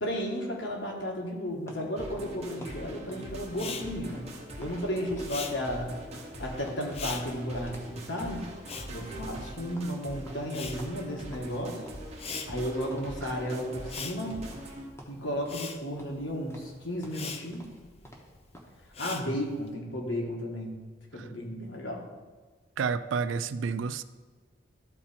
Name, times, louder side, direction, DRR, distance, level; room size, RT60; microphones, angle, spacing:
voice 1, 0.0-4.2 4.6-5.9 6.4-8.5 8.9-11.8 12.5-14.4 15.1-17.7 19.0-20.8 21.1-22.1, equal, 70° left, 0 dB, 1.6 m, -33 dB
sound 1, 1.7-4.8 5.1-5.4 5.6-7.9 8.2-8.4 8.7-11.6 11.8-12.6 12.9-13.1 13.4-14.7 15.0-15.7 16.0-18.8, equal, 15° left, 1.0 m, -51 dB
sound 2, 2.0-14.9, right 1 dB, 30° right, 1.0 m, -43 dB
Respiratory sounds, 3.5-10.0 10.2-19.7, left 5 dB, 30° left, 0.5 m, -42 dB
voice 2, 22.8-24.0, right 5 dB, 75° right, 14 dB, 0.4 m, -30 dB
12.5 x 4.3 x 4.3 m, 1.4 s
head